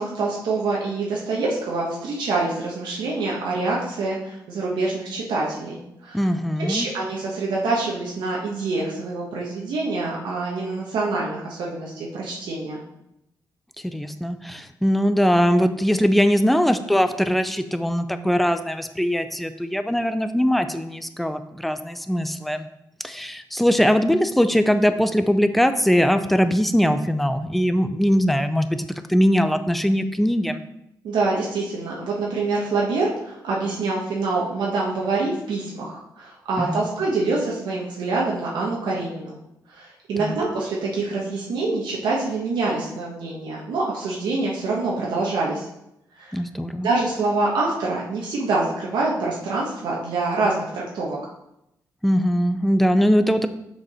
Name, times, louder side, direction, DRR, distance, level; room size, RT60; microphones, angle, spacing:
voice 1, 0.0-6.3 6.6-12.8 31.0-39.4 39.7-45.7 46.1-46.4 46.8-51.2, right 3 dB, 85° right, -4 dB, 1.5 m, -26 dB
voice 2, 6.1-6.9 13.8-22.7 23.0-30.6 36.6-36.9 40.2-40.4 46.3-46.9 52.0-53.5, equal, ahead, 9 dB, 0.5 m, -21 dB
6.9 x 5.1 x 4.9 m, 0.82 s
wide cardioid pair, 150°, 8 cm